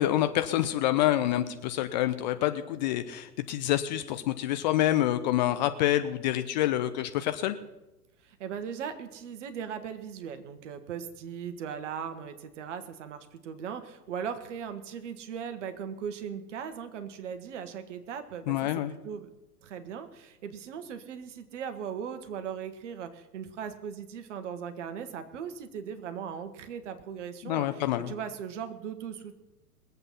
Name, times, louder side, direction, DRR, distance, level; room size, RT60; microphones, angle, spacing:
voice 1, 0.0-7.6 18.5-18.9 27.4-28.1, left 13 dB, 30° left, 10 dB, 0.6 m, -27 dB
voice 2, 8.2-19.3 19.6-29.3, right 7 dB, 50° right, 9 dB, 1.6 m, -38 dB
21.0 x 8.1 x 5.8 m, 0.99 s
figure-of-eight pair, 105°, 46 cm